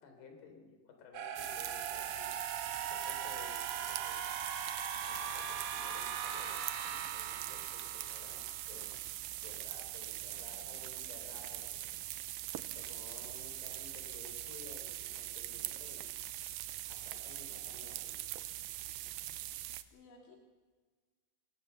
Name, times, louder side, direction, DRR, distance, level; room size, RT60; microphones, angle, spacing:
voice 1, 0.0-4.4 5.0-12.1 12.5-16.1 16.9-18.4, left 5 dB, 65° left, 3 dB, 5.8 m, -55 dB
sound 1, 1.1-9.1, right 7 dB, 70° right, 1.5 m, -40 dB
sound 2, 1.4-19.8, right 14 dB, 90° right, 2.0 m, -42 dB
voice 2, 10.3-10.8 19.9-20.4, left 3 dB, 90° left, 0 dB, 5.0 m, -59 dB
23.0 x 19.0 x 7.0 m, 1.3 s
omnidirectional pair, 5.1 m